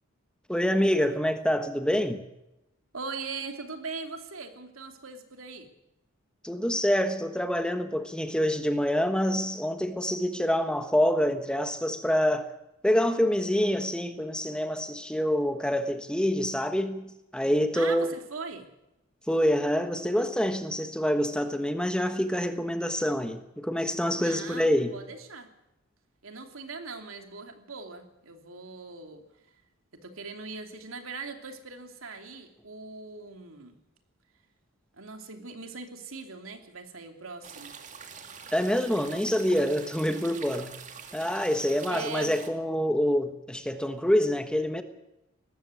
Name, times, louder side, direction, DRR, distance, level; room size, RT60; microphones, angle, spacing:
voice 1, 0.5-2.2 6.4-12.5 12.8-18.1 19.3-24.9 38.5-40.8 41.1-44.8, equal, 5° left, 1.3 m, -26 dB
voice 2, 2.9-5.7 17.7-18.7 24.2-25.5 26.2-29.2 30.0-33.8 34.9-37.8 41.9-42.3, right 4 dB, 90° right, 2.8 m, -40 dB
sound 1, 37.4-42.5, right 6 dB, 35° right, 2.1 m, -45 dB
19.0 x 15.0 x 9.5 m
head